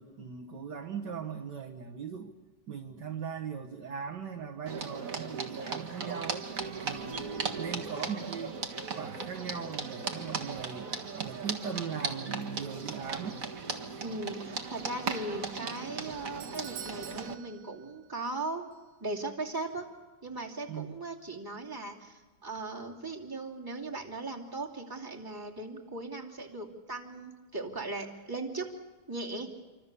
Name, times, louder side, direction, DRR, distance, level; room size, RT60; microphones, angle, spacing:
voice 1, 0.0-2.3 2.7-6.5 6.8-7.3 7.6-8.6 8.9-13.4 20.7-20.9, right 6 dB, 60° right, 2 dB, 1.9 m, -39 dB
sound 1, 4.7-17.3, right 5 dB, 45° right, 2.0 m, -37 dB
voice 2, 14.0-18.6 19.0-19.9 20.2-28.7 29.1-29.5, right 2 dB, 10° right, -2 dB, 2.7 m, -38 dB
Doorbell, 16.3-18.4 18.7-18.8 19.6-19.7, right 8 dB, 75° right, 1.9 m, -48 dB
27.5 x 25.0 x 6.9 m, 1.2 s
omnidirectional pair, 2.2 m